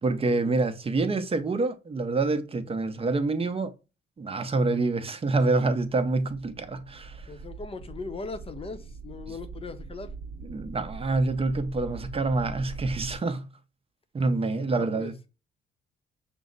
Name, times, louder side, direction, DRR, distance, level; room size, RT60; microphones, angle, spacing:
voice 1, 0.0-3.7 4.2-7.3 10.4-13.5 14.1-15.1, right 3 dB, 30° right, 0.7 m, -27 dB
sound 1, 6.4-13.2, right 3 dB, 70° right, 0.8 m, -42 dB
voice 2, 7.3-10.2 14.4-15.1, left 3 dB, 30° left, 0.7 m, -39 dB
6.1 x 2.1 x 3.8 m
cardioid pair, 90°, 20 cm